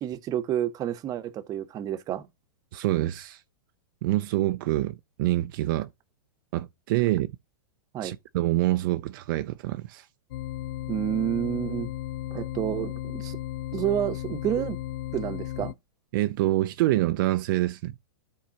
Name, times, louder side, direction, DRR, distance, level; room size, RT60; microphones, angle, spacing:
voice 1, 0.0-2.2 7.9-8.1 10.9-11.9 12.3-13.4 13.7-14.8 15.1-15.7, right 11 dB, 30° right, 0.9 m, -29 dB
voice 2, 2.7-3.4 4.0-5.9 6.5-7.3 8.0-10.1 16.1-17.9, right 16 dB, 55° right, 0.5 m, -26 dB
sound 1, 10.3-15.7, left 13 dB, 70° left, 0.4 m, -35 dB
13.5 x 4.7 x 2.9 m
hypercardioid pair, 130°, 13 cm